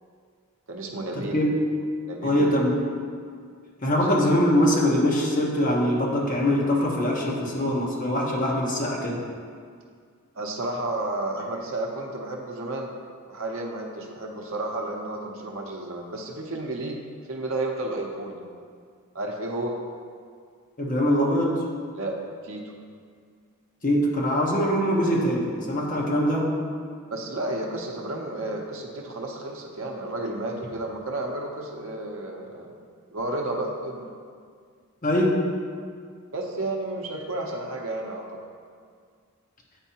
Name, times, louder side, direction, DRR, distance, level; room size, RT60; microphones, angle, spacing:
voice 1, 0.7-1.4 2.0-2.6 3.9-4.1 10.3-12.9 13.2-17.0 17.3-18.4 19.1-19.8 21.9-22.7 27.1-32.7 33.1-34.1 36.3-38.4, right 2 dB, 65° right, 0 dB, 0.7 m, -32 dB
voice 2, 2.2-2.8 3.8-9.2 20.8-21.6 23.8-26.5 35.0-35.4, equal, 35° left, -2 dB, 0.9 m, -23 dB
8.8 x 4.5 x 2.9 m, 2.1 s
head